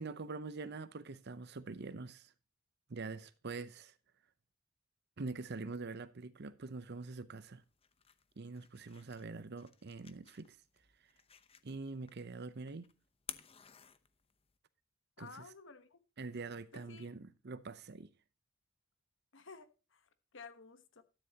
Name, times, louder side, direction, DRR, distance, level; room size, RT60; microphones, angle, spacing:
voice 1, 0.0-2.3 2.9-3.9 5.2-7.6 8.4-10.6 11.6-12.9 15.2-15.3 16.2-18.1, right 3 dB, 50° right, 0.7 m, -44 dB
sound 1, 7.6-14.6, left 8 dB, 30° left, 0.8 m, -55 dB
voice 2, 15.2-16.0 16.7-17.1 19.3-21.0, left 4 dB, 60° left, 1.2 m, -54 dB
13.0 x 10.5 x 2.9 m
head